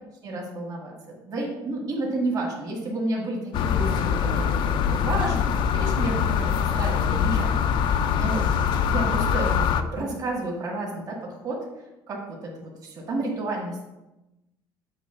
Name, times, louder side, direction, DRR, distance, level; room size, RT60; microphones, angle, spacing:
voice 1, 0.2-0.9 1.3-8.5 8.9-11.2 11.4-11.6 12.1-13.8, right 2 dB, 45° right, -3 dB, 2.1 m, -31 dB
sound 1, 3.5-9.8, left 7 dB, 60° left, 0.5 m, -23 dB
8.2 x 3.2 x 5.8 m, 0.97 s
cardioid pair, 125°, 9 cm